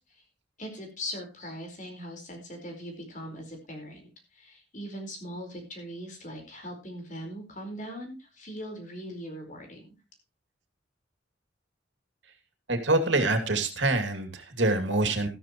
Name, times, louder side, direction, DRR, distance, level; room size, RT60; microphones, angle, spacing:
voice 1, 0.6-9.9, equal, 45° left, 4 dB, 4.6 m, -40 dB
voice 2, 12.7-15.3, right 2 dB, 85° right, 7 dB, 2.6 m, -25 dB
13.5 x 13.0 x 3.1 m, 0.28 s
head